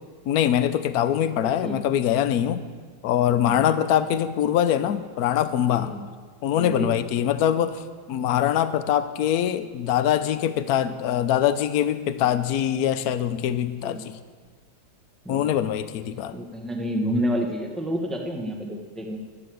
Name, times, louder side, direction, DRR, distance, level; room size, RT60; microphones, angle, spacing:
voice 1, 0.3-2.6 3.0-5.9 6.4-7.8 8.1-14.2 15.3-16.4, left 10 dB, 70° left, 12 dB, 0.9 m, -23 dB
voice 2, 1.4-1.8 3.4-3.6 5.7-6.0 6.5-6.9 13.8-14.1 15.2-15.4 16.0-19.2, equal, ahead, 1 dB, 1.1 m, -29 dB
12.0 x 9.5 x 7.8 m, 1.5 s
omnidirectional pair, 2.3 m